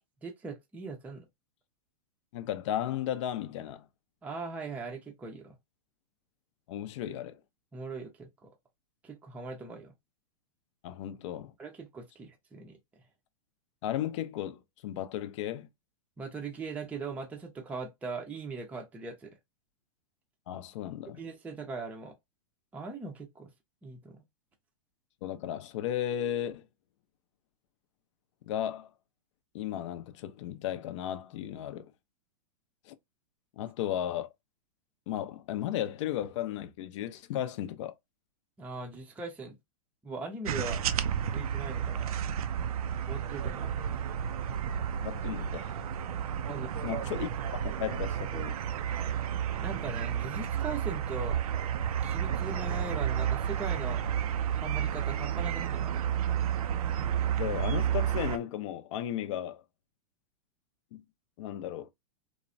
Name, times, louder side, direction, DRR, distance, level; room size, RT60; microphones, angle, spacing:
voice 1, 0.2-1.3 4.2-5.6 7.7-8.5 9.0-9.9 11.6-12.8 16.2-19.4 21.1-22.2 22.7-23.5 23.8-24.2 38.6-39.6 40.0-40.8 41.3-42.2 43.1-43.7 46.5-47.0 49.6-51.4 52.0-54.0 54.5-56.0, right 4 dB, 10° right, 0.5 m, -40 dB
voice 2, 2.3-3.9 6.7-7.4 10.8-11.5 13.8-15.7 20.5-21.2 25.2-26.7 28.5-28.9 29.5-31.9 32.9-33.0 33.6-34.3 35.1-37.9 45.0-45.7 46.8-48.6 57.4-59.6 60.9-61.0 61.4-61.9, left 11 dB, 55° left, 0.5 m, -35 dB
sound 1, 40.5-58.4, right 9 dB, 85° right, 0.4 m, -31 dB
3.0 x 2.1 x 2.6 m
hypercardioid pair, 140°, 18 cm